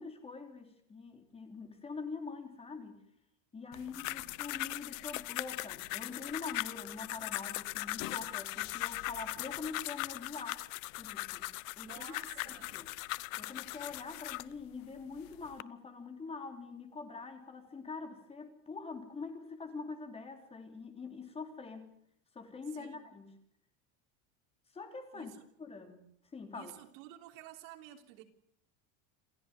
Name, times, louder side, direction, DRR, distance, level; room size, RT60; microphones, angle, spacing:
voice 1, 0.0-3.0 3.5-10.6 11.0-12.2 12.4-12.9 13.4-21.9 22.3-23.4 24.7-25.3 25.6-26.1 26.3-26.7, left 4 dB, 15° left, 3.2 m, -44 dB
voice 2, 3.5-4.4 11.8-12.8 22.7-23.1 25.1-25.5 26.5-28.2, right 14 dB, 80° right, 3.5 m, -53 dB
sound 1, 3.7-14.5 15.2-15.6, left 22 dB, 80° left, 0.9 m, -39 dB
28.0 x 14.5 x 9.5 m
cardioid pair, 170°, 39 cm